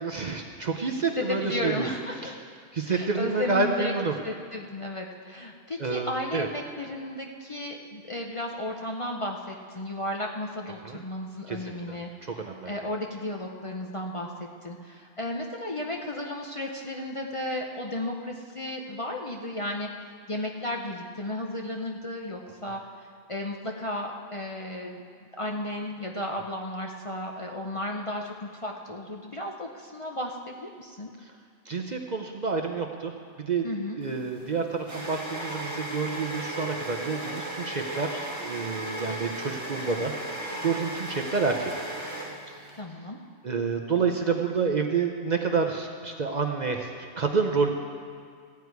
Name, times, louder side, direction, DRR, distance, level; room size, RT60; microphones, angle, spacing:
voice 1, 0.0-1.9 2.2-2.3 2.7-4.1 5.8-6.5 10.8-11.0 11.5-12.0 12.2-12.7 31.7-33.1 33.4-33.7 34.0-40.4 40.6-41.7 42.5-42.8 43.4-46.9 47.2-47.7, right 4 dB, 45° right, 3 dB, 0.7 m, -28 dB
voice 2, 0.9-2.4 2.9-3.9 4.2-14.3 14.6-19.9 20.3-22.8 23.3-25.0 25.4-31.1 33.6-34.0 42.7-43.2, left 1 dB, 35° left, 0 dB, 0.6 m, -34 dB
sound 1, 34.1-42.8, right 1 dB, 15° right, 1.5 m, -36 dB
15.0 x 9.5 x 4.7 m, 2.1 s
omnidirectional pair, 1.2 m